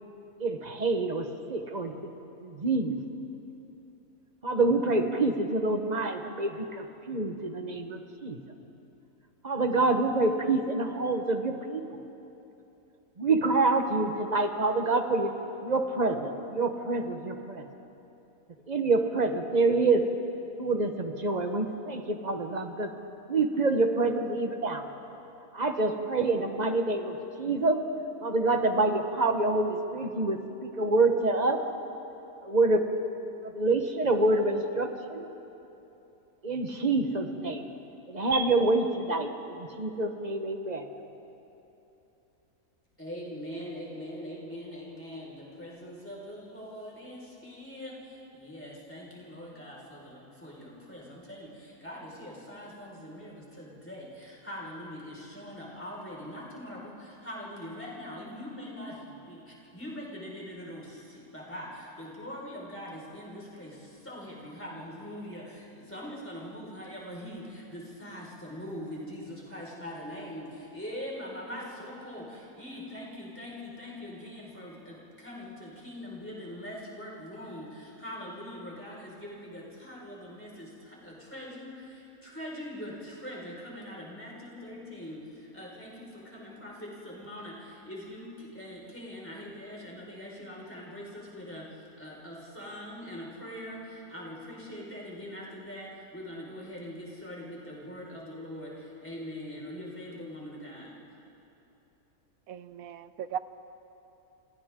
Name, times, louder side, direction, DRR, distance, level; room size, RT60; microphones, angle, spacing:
voice 1, 0.4-2.1 2.4-3.0 4.4-8.4 9.4-11.8 13.2-15.3 15.6-17.6 18.7-20.0 20.6-22.9 23.3-24.8 25.5-27.8 28.2-31.6 32.4-32.9 33.4-35.3 36.4-37.7 38.1-40.9, right 3 dB, 30° right, 5 dB, 1.2 m, -27 dB
voice 2, 43.0-100.9, equal, 10° left, -5 dB, 5.1 m, -42 dB
voice 3, 102.5-103.4, right 9 dB, 70° right, 13 dB, 1.1 m, -37 dB
29.5 x 26.5 x 3.8 m, 2.9 s
omnidirectional pair, 1.6 m